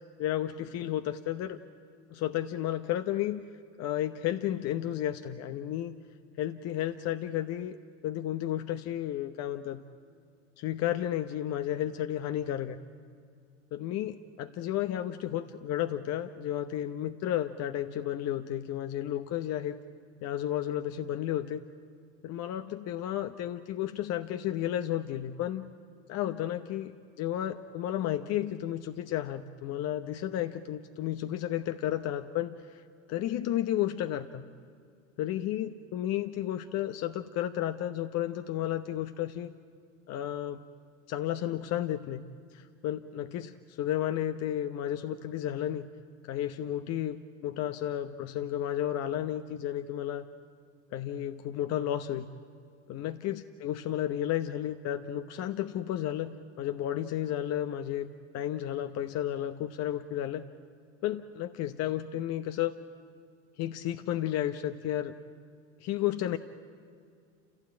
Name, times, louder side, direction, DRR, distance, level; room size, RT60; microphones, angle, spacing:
voice 1, 0.2-1.6 2.1-3.4 3.8-5.9 6.4-7.8 8.0-9.8 10.6-12.8 13.7-19.8 20.2-21.6 22.2-25.7 26.1-26.9 27.2-32.8 33.1-34.4 35.2-39.5 40.1-40.6 41.1-42.2 42.5-45.9 46.2-47.2 47.4-50.2 50.9-52.3 52.9-60.4 61.0-62.8 63.6-65.1 65.8-66.4, left 12 dB, 40° left, 9 dB, 1.0 m, -32 dB
29.0 x 15.5 x 9.0 m, 2.3 s
figure-of-eight pair, 75°, 38 cm